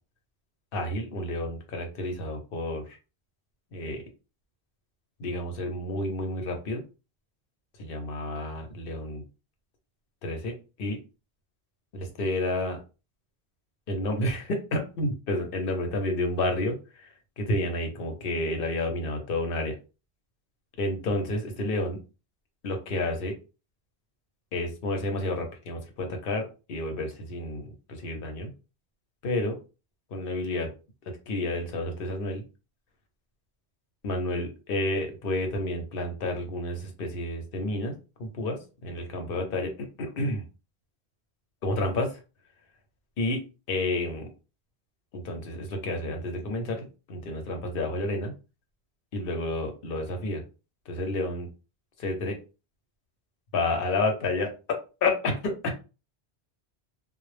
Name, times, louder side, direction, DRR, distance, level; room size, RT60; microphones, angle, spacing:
voice 1, 0.7-2.8 3.7-4.0 5.2-6.8 7.8-9.2 10.2-11.0 11.9-12.8 13.9-19.8 20.8-22.0 22.6-23.3 24.5-28.5 29.2-29.6 30.1-30.7 31.3-32.4 34.0-40.4 41.6-42.2 43.2-43.4 43.7-44.3 45.1-48.3 49.1-50.4 50.9-51.5 52.0-52.4 53.5-55.7, left 2 dB, 60° left, 4 dB, 0.8 m, -30 dB
2.0 x 2.0 x 3.1 m, 0.31 s
omnidirectional pair, 1.1 m